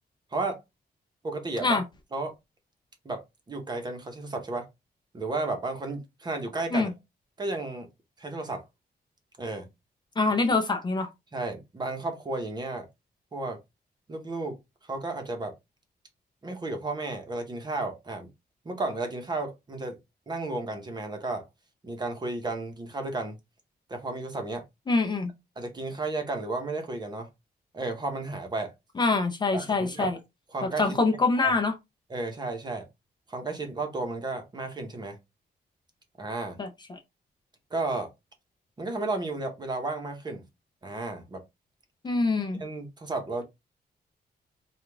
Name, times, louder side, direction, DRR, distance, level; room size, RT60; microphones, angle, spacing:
voice 1, 1.2-1.8 2.1-2.3 3.0-4.7 5.1-6.9 7.4-7.9 8.2-8.6 9.4-9.7 11.3-12.8 13.3-13.6 14.1-14.6 14.8-15.5 16.4-18.3 18.6-20.0 20.3-21.4 21.8-23.4 23.9-24.6 25.6-27.3 27.7-28.7 29.5-30.1 30.5-31.0 31.4-31.6 32.1-32.9 33.3-35.2 36.2-36.6 37.7-38.1 38.8-40.4 40.8-41.4 42.6-43.4, right 2 dB, 25° right, 0.9 m, -33 dB
voice 2, 10.2-11.1 24.9-25.3 29.0-30.2 30.6-31.7 36.6-37.0 42.0-42.6, left 3 dB, 25° left, 0.5 m, -25 dB
4.9 x 2.4 x 3.4 m
wide cardioid pair, 175°, 17 cm